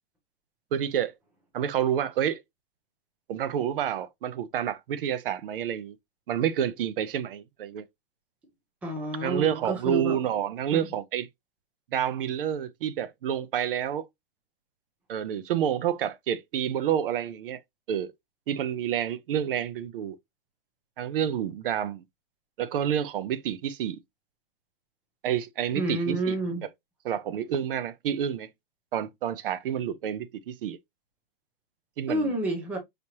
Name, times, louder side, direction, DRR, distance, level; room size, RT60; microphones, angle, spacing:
voice 1, 0.7-1.1 1.5-2.4 3.3-6.0 6.3-7.8 9.2-11.3 11.9-14.1 15.1-17.6 17.9-18.1 18.5-20.2 21.0-22.0 22.6-24.0 25.2-26.4 27.0-28.5 28.9-30.8 32.0-32.3, right 9 dB, 65° right, 0.6 m, -29 dB
voice 2, 8.8-10.2 10.7-10.9 25.7-26.6 32.1-32.8, right 1 dB, 5° right, 0.5 m, -29 dB
5.0 x 3.0 x 2.7 m
supercardioid pair, 175°, 30 cm